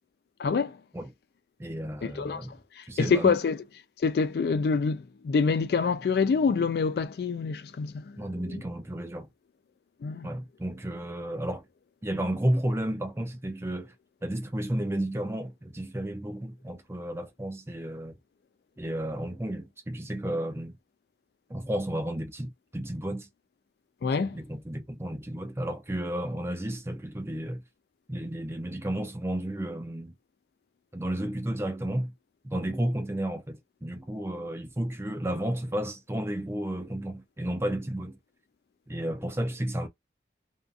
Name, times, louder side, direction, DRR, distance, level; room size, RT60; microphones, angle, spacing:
voice 1, 0.4-0.8 2.0-3.6 4.0-8.2 8.5-8.6 10.0-10.3 24.0-24.3, left 5 dB, 60° left, 0.3 m, -26 dB
voice 2, 1.6-2.5 2.9-3.4 8.2-9.3 10.2-11.7 12.0-13.9 14.2-18.2 18.8-20.8 21.5-23.3 24.2-27.6 28.1-30.1 30.9-32.1 32.4-38.2 38.9-39.9, right 1 dB, 15° right, 0.5 m, -32 dB
2.6 x 2.4 x 2.2 m
head